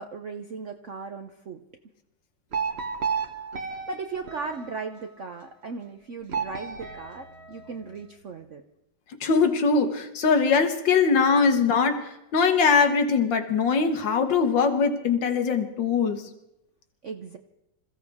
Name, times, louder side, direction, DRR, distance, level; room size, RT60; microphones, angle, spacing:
voice 1, 0.0-1.6 3.7-8.6 17.0-17.4, right 4 dB, 60° right, 6 dB, 0.7 m, -37 dB
sound 1, 2.5-5.2 6.3-8.1, right 6 dB, 40° right, 1.3 m, -33 dB
voice 2, 9.2-16.3, left 5 dB, 70° left, 7 dB, 1.9 m, -22 dB
26.5 x 15.5 x 3.5 m, 0.88 s
omnidirectional pair, 2.1 m